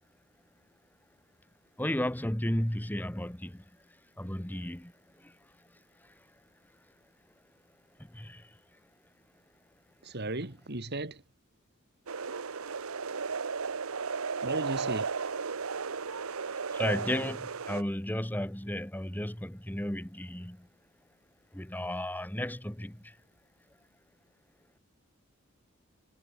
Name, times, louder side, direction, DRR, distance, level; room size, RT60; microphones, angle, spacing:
voice 1, 1.8-3.6 4.2-5.3 6.0-6.1 8.0-8.5 16.7-20.7 21.5-23.2, left 1 dB, 10° left, 1.6 m, -34 dB
voice 2, 10.0-11.2 14.4-15.1, right 2 dB, 50° right, 2.7 m, -36 dB
sound 1, 12.1-17.8, right 5 dB, 85° right, 1.0 m, -34 dB
head